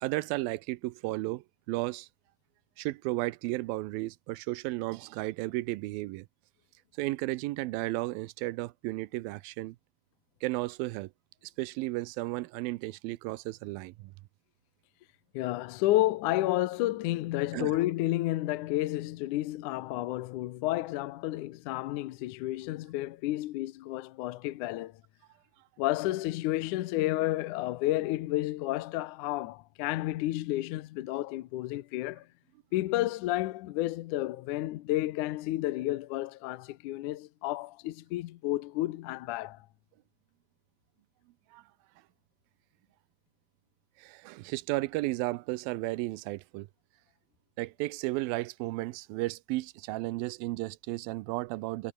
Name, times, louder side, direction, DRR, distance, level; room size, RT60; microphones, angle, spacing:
voice 1, 0.0-2.1 2.8-6.3 7.0-9.8 10.4-11.1 11.6-14.1 17.5-17.8 41.5-41.6 44.0-46.7 47.6-51.9, right 19 dB, 90° right, 2.5 m, -34 dB
voice 2, 15.3-24.9 25.8-32.3 32.7-39.7, left 16 dB, 75° left, 2.1 m, -31 dB
omnidirectional pair, 4.1 m